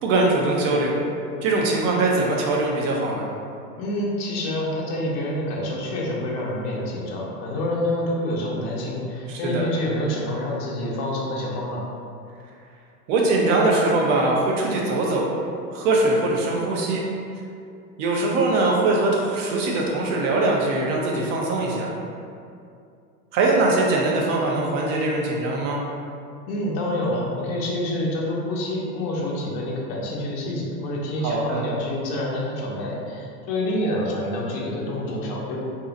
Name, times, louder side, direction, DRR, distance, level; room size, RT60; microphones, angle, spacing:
voice 1, 0.0-1.0 1.4-3.3 9.3-9.7 13.1-15.3 15.7-17.0 18.0-21.9 23.3-25.8 31.2-31.6, right 2 dB, 50° right, -2 dB, 0.8 m, -22 dB
voice 2, 3.8-11.9 26.5-35.6, left 1 dB, 45° left, -3 dB, 0.9 m, -27 dB
2.7 x 2.3 x 3.8 m, 2.5 s
hypercardioid pair, 110°, 48 cm